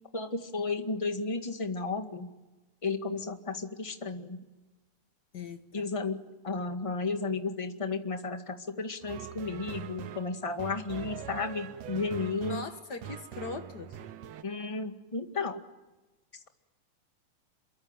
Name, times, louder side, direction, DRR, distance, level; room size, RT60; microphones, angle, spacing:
voice 1, 0.1-2.3 2.8-4.4 5.7-12.6 14.4-15.6, left 3 dB, 15° left, 5 dB, 1.2 m, -33 dB
voice 2, 5.3-5.9 12.4-14.0, left 4 dB, 50° left, 7 dB, 1.3 m, -40 dB
sound 1, 9.0-14.4, right 9 dB, 65° right, 1.9 m, -43 dB
28.0 x 23.5 x 9.1 m, 1.1 s
omnidirectional pair, 3.8 m